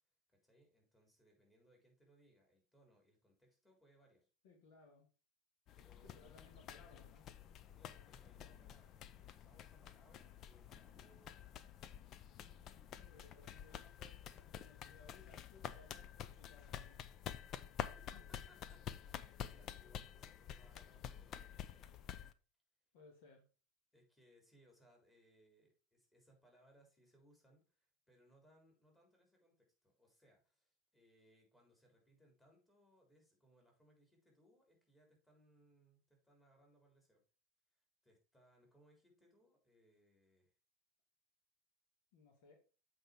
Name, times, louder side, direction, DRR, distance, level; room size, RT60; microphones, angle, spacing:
voice 1, 0.3-4.3 5.8-6.1 7.7-11.9 17.8-18.8 19.1-21.9 23.9-37.2 37.7-40.5, equal, 10° left, 1 dB, 3.7 m, -70 dB
voice 2, 4.4-5.1 6.0-7.3 13.0-17.0 18.1-18.2 22.9-23.5 42.1-42.6, left 3 dB, 60° left, 1 dB, 2.1 m, -64 dB
sound 1, 5.7-22.3, left 10 dB, 40° left, 0.6 m, -50 dB
7.8 x 4.3 x 5.0 m, 0.36 s
figure-of-eight pair, 80°, 0 cm